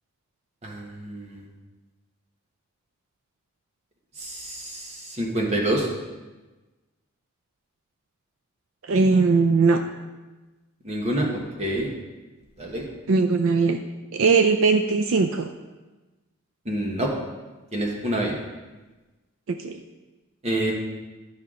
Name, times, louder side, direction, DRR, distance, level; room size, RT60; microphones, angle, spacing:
voice 1, 0.6-1.4 4.2-5.9 10.8-11.9 12.6-12.8 16.6-17.1 17.7-18.4 20.4-20.7, right 1 dB, 30° right, 0 dB, 1.2 m, -27 dB
voice 2, 8.8-9.8 13.1-13.8 14.1-15.5 19.5-19.8, right 4 dB, 70° right, 7 dB, 0.4 m, -20 dB
11.0 x 5.6 x 3.8 m, 1.2 s
head